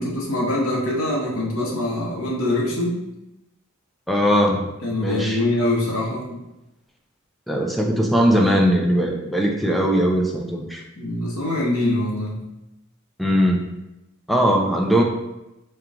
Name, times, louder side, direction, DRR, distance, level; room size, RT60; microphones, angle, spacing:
voice 1, 0.0-3.0 4.8-6.4 11.0-12.5, left 1 dB, 80° left, -3 dB, 1.1 m, -24 dB
voice 2, 4.1-4.7 5.0-5.4 7.5-10.8 13.2-13.7 14.3-15.0, equal, ahead, 0 dB, 0.4 m, -19 dB
4.5 x 2.3 x 3.7 m, 0.95 s
head